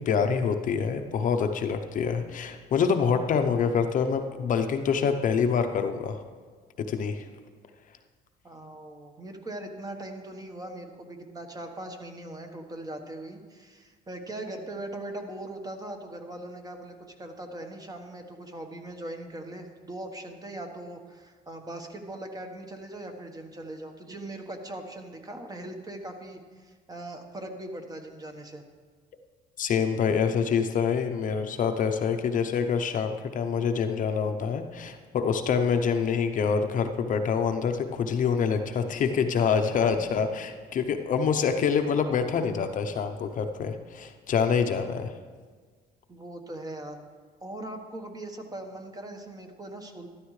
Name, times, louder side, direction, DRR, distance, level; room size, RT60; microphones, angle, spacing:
voice 1, 0.0-6.2 6.9-7.2 29.6-45.1, left 6 dB, 50° left, 6 dB, 0.7 m, -26 dB
voice 2, 8.4-28.6 46.1-47.0 47.4-50.1, right 1 dB, 20° right, 4 dB, 1.3 m, -40 dB
13.0 x 12.0 x 3.2 m, 1.5 s
cardioid pair, 110°, 17 cm